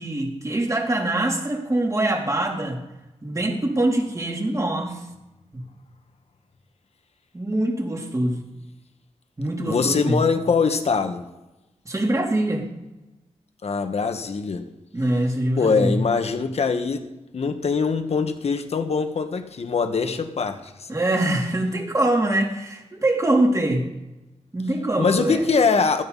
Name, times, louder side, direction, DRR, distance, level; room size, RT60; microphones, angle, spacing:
voice 1, 0.0-2.8 3.2-5.0 5.5-5.6 7.3-8.4 9.4-10.2 11.8-12.7 14.9-16.0 20.9-23.8 24.5-25.5, right 1 dB, 25° right, 3.2 m, -23 dB
voice 2, 9.7-11.2 13.6-14.6 15.6-17.0 17.3-20.7 25.0-26.0, left 5 dB, 65° left, 1.5 m, -22 dB
16.5 x 13.5 x 4.1 m
cardioid pair, 80°, 12 cm